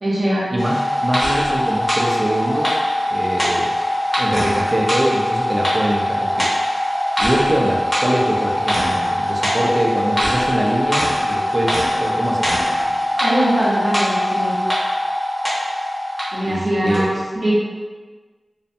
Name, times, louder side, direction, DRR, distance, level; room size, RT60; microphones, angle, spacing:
voice 1, 0.0-0.4 13.2-14.5 16.3-17.5, right 1 dB, 70° right, -9 dB, 0.8 m, -21 dB
voice 2, 0.5-2.8 3.1-3.8 4.2-6.5 7.2-12.6 16.4-17.1, right 1 dB, 40° right, -2 dB, 0.4 m, -23 dB
sound 1, 0.6-16.5 16.9-17.0, left 1 dB, 20° left, 0.9 m, -21 dB
2.5 x 2.1 x 2.6 m, 1.4 s
wide cardioid pair, 60°, 0 cm